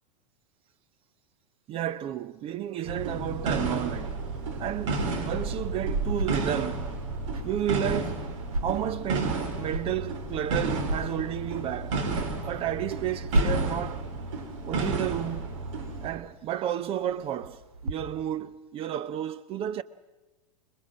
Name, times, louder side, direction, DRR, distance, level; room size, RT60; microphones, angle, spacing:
voice 1, 1.7-4.2 4.6-6.9 7.4-8.3 8.6-12.0 12.4-14.1 14.6-15.5 16.0-19.8, right 11 dB, 30° right, 0.7 m, -32 dB
sound 1, 2.9-16.1, right 3 dB, 55° right, 3.9 m, -32 dB
sound 2, 3.9-17.9, equal, 80° right, 2.4 m, -36 dB
26.0 x 21.5 x 7.5 m
figure-of-eight pair, 90°, 19 cm